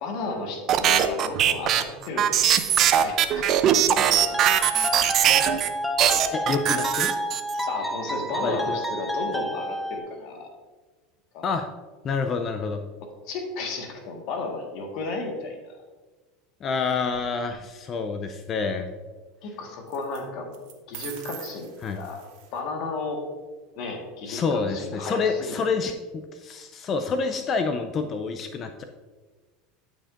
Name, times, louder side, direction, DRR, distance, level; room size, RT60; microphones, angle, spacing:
voice 1, 0.0-2.5 2.9-3.6 3.9-4.6 7.7-10.5 11.3-11.4 13.3-15.7 19.4-20.6 20.9-22.2 22.5-23.2 23.8-25.9, left 3 dB, 60° left, 2 dB, 1.5 m, -33 dB
sound 1, 0.7-5.7 6.0-7.6, right 10 dB, 45° right, 0.5 m, -21 dB
sound 2, 4.2-10.0, equal, ahead, 0.8 m, -30 dB
voice 2, 6.3-7.1 8.4-8.8 11.4-11.7 12.0-12.8 16.6-18.9 21.8-22.0 24.3-28.8, left 4 dB, 35° left, 6 dB, 0.5 m, -28 dB
sound 3, 17.1-17.5 19.9-20.2 20.5-22.6, right 10 dB, 70° right, 1.2 m, -43 dB
12.0 x 5.2 x 2.5 m, 1.3 s
supercardioid pair, 120°, 0 cm